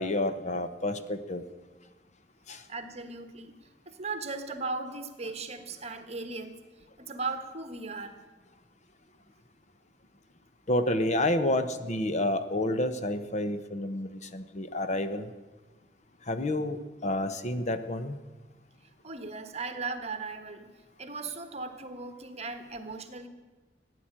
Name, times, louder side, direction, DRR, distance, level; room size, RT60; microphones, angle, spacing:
voice 1, 0.0-1.4 2.5-2.6 10.7-15.2 16.3-18.2, left 1 dB, 40° left, 10 dB, 0.9 m, -29 dB
voice 2, 2.7-3.5 3.9-6.6 7.0-8.2 19.0-20.7 21.0-23.3, right 3 dB, 35° right, 9 dB, 1.4 m, -37 dB
16.0 x 10.0 x 8.8 m, 1.3 s
head